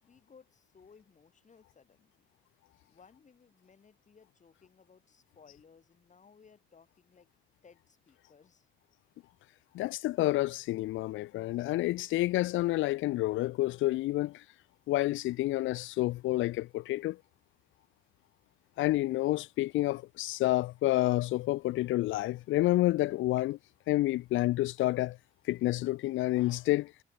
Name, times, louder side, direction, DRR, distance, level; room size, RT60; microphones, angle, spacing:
voice 1, 0.0-2.3 2.9-7.3 7.6-8.7, left 5 dB, 40° left, 3.6 m, -60 dB
voice 2, 9.7-14.4 14.9-17.2 18.8-23.6 23.9-25.2 25.5-26.9, left 17 dB, 80° left, 0.5 m, -29 dB
cardioid pair, 90°, 20 cm